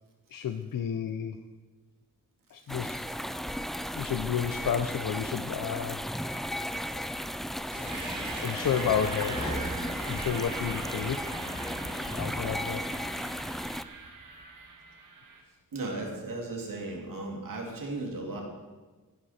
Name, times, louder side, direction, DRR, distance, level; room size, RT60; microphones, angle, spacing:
voice 1, 0.3-1.4 2.5-3.0 4.0-6.2 6.9-7.0 8.4-9.6 10.1-11.3 12.1-12.8, left 8 dB, 85° left, 8 dB, 0.7 m, -31 dB
sound 1, 2.7-13.8, equal, ahead, 0.3 m, -35 dB
sound 2, 7.7-13.7, equal, 25° left, 4.8 m, -40 dB
sound 3, 7.8-15.4, right 3 dB, 75° right, 2.4 m, -42 dB
voice 2, 15.7-18.4, right 2 dB, 90° right, 0 dB, 2.7 m, -36 dB
14.5 x 11.5 x 4.3 m, 1.3 s
wide cardioid pair, 130°, 32 cm